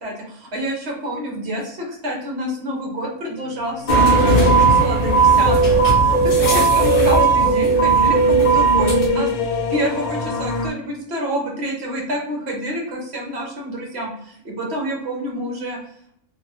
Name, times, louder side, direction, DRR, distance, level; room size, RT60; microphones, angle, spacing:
voice 1, 0.0-15.8, equal, 55° right, -1 dB, 1.1 m, -28 dB
sound 1, 3.4-10.7, left 3 dB, 80° left, 1.0 m, -27 dB
sound 2, 3.9-9.1, right 4 dB, 45° left, 0.7 m, -15 dB
2.8 x 2.7 x 2.7 m, 0.73 s
omnidirectional pair, 1.5 m